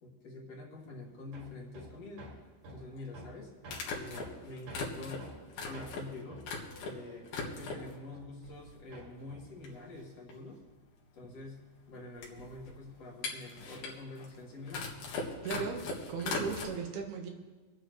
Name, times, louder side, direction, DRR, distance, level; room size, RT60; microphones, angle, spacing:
voice 1, 0.0-2.3 2.7-3.5 3.9-5.3 5.6-6.4 6.8-10.6 11.1-14.9, left 2 dB, 50° left, -2 dB, 2.7 m, -46 dB
sound 1, 0.8-0.9 2.7-2.8 3.7-7.0 7.2-8.0 8.4-9.1 9.3-9.4 9.6-16.7, left 3 dB, 70° left, 3.4 m, -40 dB
Hammer, 1.3-8.7 8.9-10.7, right 1 dB, 50° right, 3.2 m, -51 dB
voice 2, 15.4-17.3, right 5 dB, 85° right, 2 dB, 3.3 m, -37 dB
26.0 x 9.2 x 3.1 m, 1.3 s
omnidirectional pair, 4.4 m